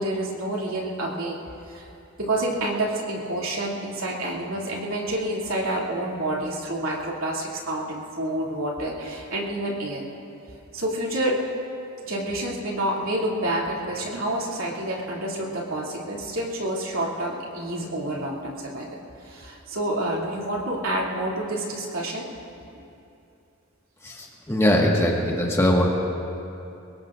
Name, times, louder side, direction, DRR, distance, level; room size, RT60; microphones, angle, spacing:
voice 1, 0.0-1.4 1.7-1.9 2.2-10.0 10.7-11.4 12.1-22.2, right 1 dB, 85° right, -4 dB, 2.8 m, -28 dB
voice 2, 24.0-25.9, left 1 dB, 15° left, -2 dB, 1.6 m, -21 dB
24.5 x 21.0 x 2.6 m, 2.7 s
head